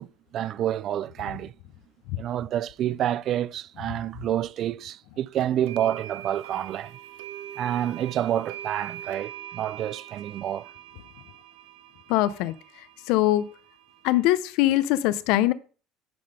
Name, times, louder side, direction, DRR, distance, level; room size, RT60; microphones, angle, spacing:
voice 1, 0.0-1.5 2.1-7.0 7.6-10.7, right 11 dB, 55° right, 0.4 m, -28 dB
sound 1, 5.4-14.3, right 11 dB, 85° right, 0.8 m, -43 dB
voice 2, 12.1-12.5 13.1-13.5 14.0-15.5, left 15 dB, 75° left, 0.6 m, -22 dB
10.5 x 3.9 x 5.0 m
supercardioid pair, 100°, 0 cm